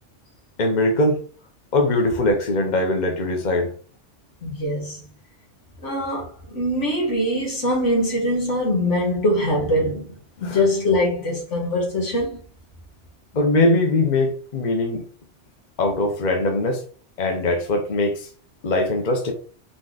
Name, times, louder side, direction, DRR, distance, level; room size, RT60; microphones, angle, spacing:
voice 1, 0.6-1.2 1.7-3.7 10.4-10.6 13.3-15.0 15.8-16.8 17.2-18.3 18.6-19.3, left 2 dB, 40° left, 1.0 m, -21 dB
voice 2, 4.4-5.1 5.8-10.2 10.4-12.4, left 1 dB, 80° left, 2.0 m, -23 dB
4.1 x 3.2 x 3.9 m
omnidirectional pair, 1.2 m